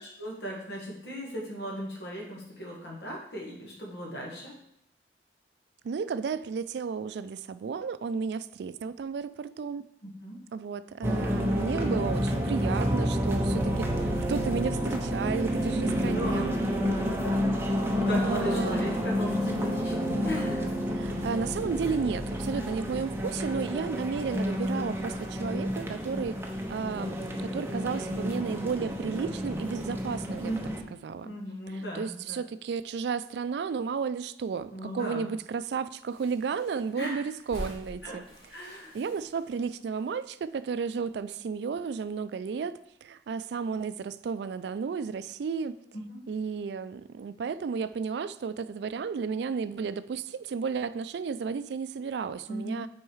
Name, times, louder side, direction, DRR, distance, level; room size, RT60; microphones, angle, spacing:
voice 1, 0.0-4.5 10.0-10.4 15.7-17.5 17.9-20.7 22.5-22.7 30.4-30.8 31.2-32.4 34.7-35.3 36.9-37.2 38.0-38.2 38.5-38.9 45.9-46.2 52.5-52.8, equal, 70° left, -2 dB, 1.8 m, -37 dB
voice 2, 5.8-9.8 10.5-16.6 18.2-18.7 20.9-26.4 26.7-30.5 31.0-31.3 31.7-38.2 38.9-45.8 46.3-52.9, right 5 dB, 70° right, 15 dB, 0.3 m, -33 dB
sound 1, 11.0-30.8, equal, 15° right, 0.7 m, -30 dB
sound 2, 35.9-41.5 41.8-41.9 42.1-43.0 43.3-43.6, equal, 30° left, 2.1 m, -47 dB
6.2 x 4.6 x 4.7 m, 0.76 s
head